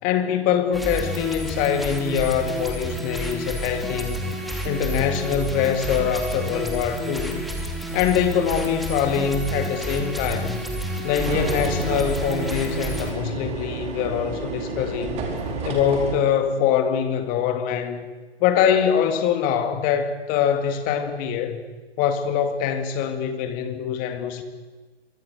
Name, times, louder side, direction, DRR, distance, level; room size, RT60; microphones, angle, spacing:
voice 1, 0.0-4.2 4.6-7.4 7.9-10.6 11.0-15.3 15.6-18.1 18.4-21.6 22.0-24.4, left 8 dB, 25° left, 8 dB, 2.2 m, -23 dB
sound 1, 0.7-13.1, right 1 dB, ahead, 2.8 m, -30 dB
sound 2, 11.2-16.2, right 4 dB, 20° right, 4.4 m, -31 dB
27.5 x 24.0 x 6.4 m, 1.3 s
hypercardioid pair, 135°, 33 cm